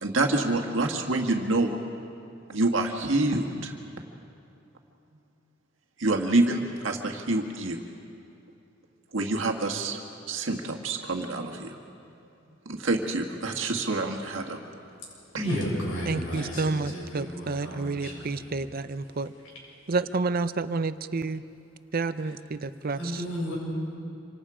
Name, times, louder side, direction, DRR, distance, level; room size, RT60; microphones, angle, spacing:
voice 1, 0.0-1.7 2.5-3.7 6.0-7.8 9.1-10.0 10.3-11.8 12.7-14.6 15.3-15.4, right 2 dB, 70° right, 2 dB, 1.8 m, -27 dB
voice 2, 15.4-18.5 23.0-23.6, equal, 85° left, -3 dB, 7.2 m, -33 dB
voice 3, 16.0-19.3 19.9-21.4 21.9-23.2, right 3 dB, 50° right, 13 dB, 0.6 m, -30 dB
27.0 x 25.5 x 5.0 m, 2.6 s
head